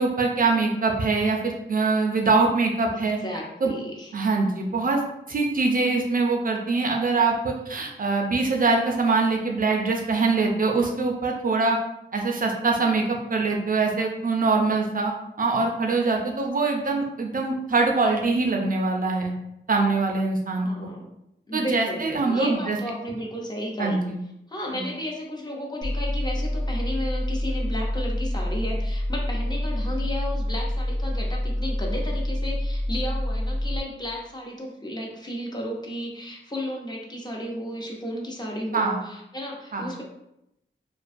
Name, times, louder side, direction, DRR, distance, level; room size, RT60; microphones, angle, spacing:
voice 1, 0.0-3.2 3.6-3.7 4.1-5.0 5.3-11.8 12.1-19.3 19.7-20.9 21.5-22.8 23.8-24.2 24.7-24.8 38.7-39.0 39.7-39.9, right 3 dB, 50° right, 1 dB, 0.4 m, -23 dB
voice 2, 2.9-4.1 20.6-21.0 21.5-24.0 24.5-40.0, equal, 20° left, -2 dB, 0.5 m, -33 dB
sound 1, 25.8-33.8, left 1 dB, 80° left, 0.5 m, -27 dB
2.4 x 2.2 x 2.5 m, 0.83 s
wide cardioid pair, 80°, 19 cm